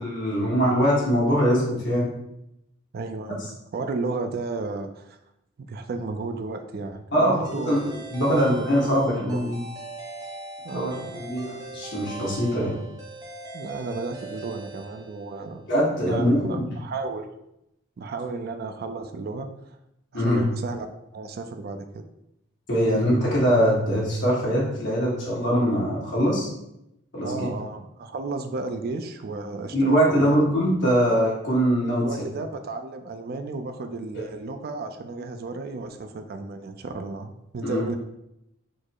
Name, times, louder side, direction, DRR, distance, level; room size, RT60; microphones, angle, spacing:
voice 1, 0.0-2.1 7.1-7.3 7.6-7.8 8.1-9.6 10.7-12.8 15.7-16.6 20.1-20.4 22.7-26.5 27.1-27.5 29.7-32.3 34.1-34.2 37.6-37.8, equal, 60° left, -5 dB, 1.5 m, -22 dB
voice 2, 2.9-5.2 5.6-7.9 8.2-9.4 10.6-11.3 13.5-15.6 16.0-17.3 18.0-19.5 20.1-20.9 21.1-22.0 27.2-30.4 32.0-38.0, right 3 dB, 50° right, 7 dB, 0.4 m, -33 dB
sound 1, 7.4-15.6, right 2 dB, 20° right, 0.7 m, -40 dB
4.4 x 2.0 x 4.5 m, 0.84 s
head